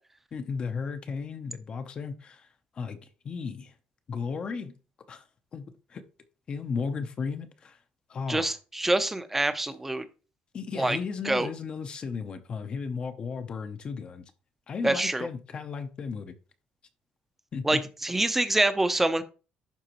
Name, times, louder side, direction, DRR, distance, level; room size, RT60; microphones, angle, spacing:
voice 1, 0.3-2.5 2.7-3.0 3.2-3.7 4.1-4.7 5.1-5.2 5.5-5.6 5.9-6.0 6.5-7.8 8.1-8.5 10.5-14.2 14.7-16.3 17.5-17.8, left 5 dB, 35° left, 0.7 m, -34 dB
voice 2, 8.3-10.0 10.8-11.0 11.2-11.5 14.8-15.3 17.6-19.2, right 2 dB, 10° right, 0.6 m, -26 dB
11.5 x 3.9 x 3.0 m
cardioid pair, 140°, 3 cm